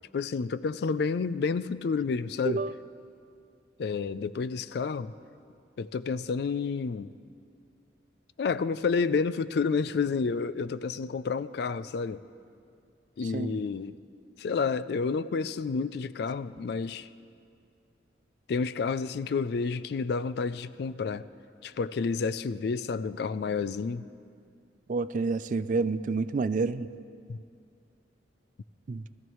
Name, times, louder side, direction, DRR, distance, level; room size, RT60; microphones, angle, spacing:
voice 1, 0.1-2.6 3.8-5.1 5.8-7.1 8.4-12.2 13.2-14.0 14.4-17.1 18.5-21.3 21.6-24.1 27.3-27.4, left 5 dB, 60° left, 0.3 m, -30 dB
voice 2, 24.9-26.9 28.9-29.0, right 4 dB, 45° right, 0.3 m, -28 dB
20.5 x 13.5 x 3.1 m
head